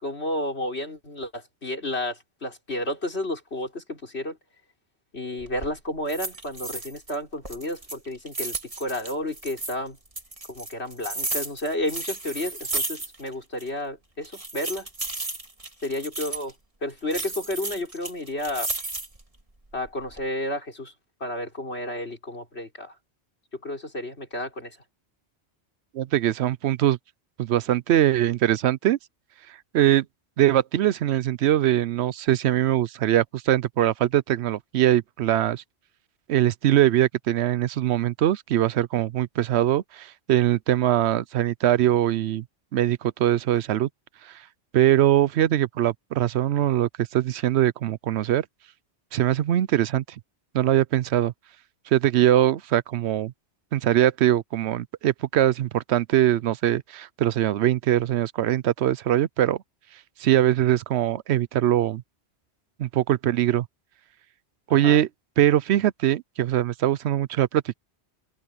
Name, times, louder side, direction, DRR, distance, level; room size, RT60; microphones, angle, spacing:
voice 1, 0.0-4.4 5.1-10.0 10.5-14.9 15.8-16.5 16.8-18.7 19.7-20.9 21.2-22.9 23.6-24.8 64.8-65.0, left 1 dB, 70° left, 5.5 m, -31 dB
sound 1, 5.4-5.7 6.1-7.2 7.4-9.8 10.2-13.3 13.6-13.7 14.2-16.5 17.1-19.2 19.7-20.2, right 2 dB, 30° right, 2.3 m, -33 dB
voice 2, 25.9-27.0 27.4-29.0 29.7-30.1 30.4-35.6 36.3-42.4 42.7-43.9 44.2-44.4 44.7-48.4 49.1-50.0 50.5-51.3 51.9-53.3 53.7-59.6 60.2-62.0 62.8-63.7 64.7-65.1 65.4-67.7, right 12 dB, 75° right, 0.8 m, -22 dB
omnidirectional pair, 1.1 m